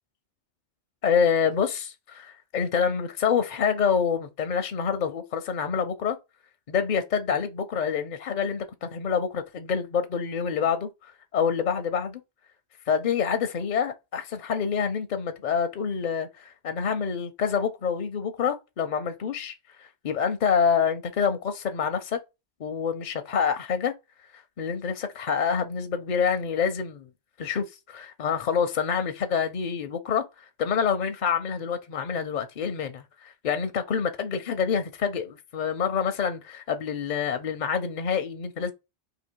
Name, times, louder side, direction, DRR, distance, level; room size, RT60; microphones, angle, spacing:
voice 1, 1.0-6.2 6.7-12.2 12.9-22.2 22.6-23.9 24.6-27.1 27.4-38.7, left 7 dB, 55° left, 0.5 m, -27 dB
2.9 x 2.7 x 4.4 m
omnidirectional pair, 1.2 m